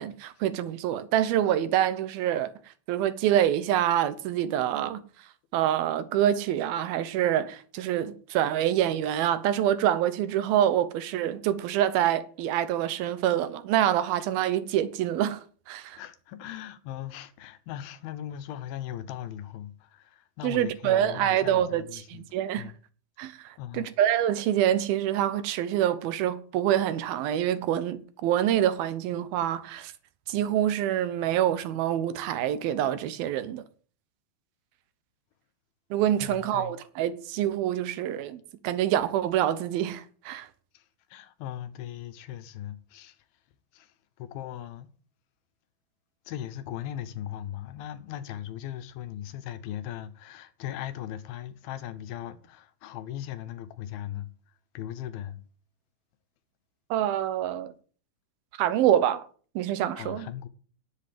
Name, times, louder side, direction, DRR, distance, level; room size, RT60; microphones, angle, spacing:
voice 1, 0.0-2.5 2.9-5.0 5.5-15.4 15.7-16.0 20.4-22.7 23.2-29.9 30.3-33.6 35.9-40.5 56.9-57.7 58.6-59.3 59.6-60.3, right 11 dB, 80° right, 2.8 m, -26 dB
voice 2, 16.0-22.3 22.6-22.8 23.6-23.9 36.2-36.8 40.7-40.8 41.1-43.2 43.7-44.9 46.3-54.3 54.7-55.4 60.0-60.5, left 11 dB, 80° left, 2.9 m, -38 dB
10.5 x 8.0 x 7.7 m
omnidirectional pair, 4.3 m